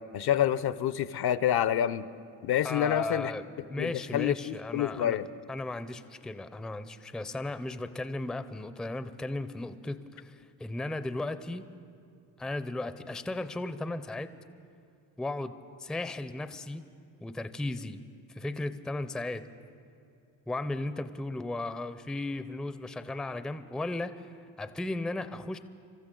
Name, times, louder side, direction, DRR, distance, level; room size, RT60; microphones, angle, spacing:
voice 1, 0.1-2.1 2.4-3.3 3.8-5.3, left 10 dB, 55° left, 15 dB, 0.6 m, -27 dB
voice 2, 2.6-5.2 5.5-11.6 12.4-14.3 15.2-15.5 15.8-16.8 17.2-18.0 18.3-19.5 20.5-25.6, left 2 dB, ahead, 11 dB, 0.5 m, -35 dB
25.5 x 13.5 x 3.8 m, 2.6 s
supercardioid pair, 80°, 46 cm